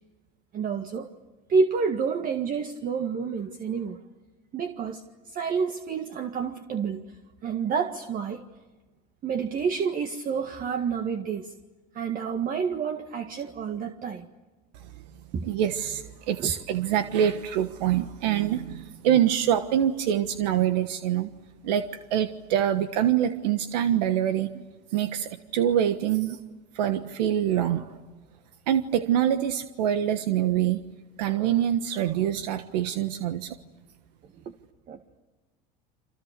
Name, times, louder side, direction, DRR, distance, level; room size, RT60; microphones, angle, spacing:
voice 1, 0.5-1.1 1.5-4.0 4.5-7.1 7.4-8.4 9.2-11.5 11.9-14.3 15.3-15.5 16.4-16.5 24.6-24.7 34.5-34.6 34.9-35.0, right 5 dB, 40° right, 6 dB, 1.8 m, -29 dB
voice 2, 15.4-21.3 21.6-24.5 24.9-26.4 26.7-27.9 28.7-30.8 31.2-33.5, right 10 dB, 90° right, 9 dB, 1.4 m, -25 dB
30.0 x 27.0 x 6.8 m, 1.2 s
supercardioid pair, 105°, 21 cm